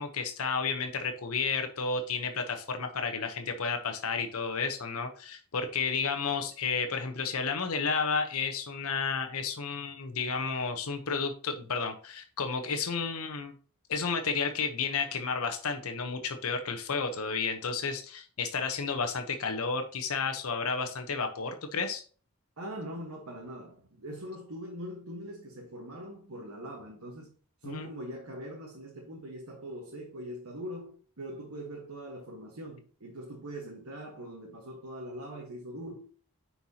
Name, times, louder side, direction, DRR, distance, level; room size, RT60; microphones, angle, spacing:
voice 1, 0.0-13.5 13.9-22.0 27.6-27.9, left 5 dB, 80° left, 6 dB, 0.8 m, -32 dB
voice 2, 22.6-27.3 27.6-36.1, equal, 80° right, 0 dB, 1.3 m, -42 dB
9.5 x 4.5 x 2.8 m, 0.41 s
head